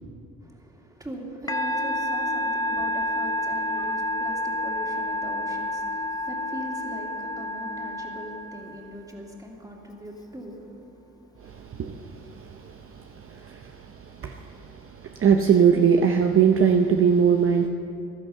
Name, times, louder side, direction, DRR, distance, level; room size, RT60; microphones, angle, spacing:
voice 1, 0.4-11.6, equal, 10° right, -1 dB, 2.5 m, -41 dB
Musical instrument, 1.5-9.1, left 1 dB, 10° left, 0.9 m, -29 dB
voice 2, 11.4-17.7, right 7 dB, 45° right, 4 dB, 0.8 m, -22 dB
15.0 x 11.5 x 5.6 m, 2.7 s
cardioid pair, 90°, 30 cm